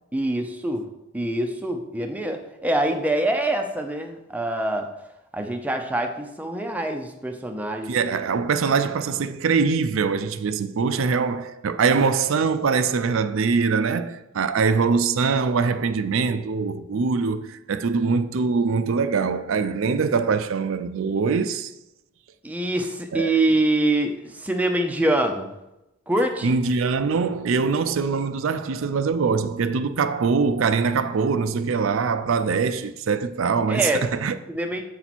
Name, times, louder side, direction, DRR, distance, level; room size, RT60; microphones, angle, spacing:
voice 1, 0.1-0.9 1.1-4.9 5.3-8.0 22.4-25.5 26.1-26.5 33.7-34.0 34.5-34.8, right 1 dB, 5° right, 0.5 m, -25 dB
voice 2, 7.9-21.7 23.1-23.3 26.4-34.4, right 5 dB, 65° right, 0.4 m, -23 dB
7.8 x 4.4 x 4.2 m
head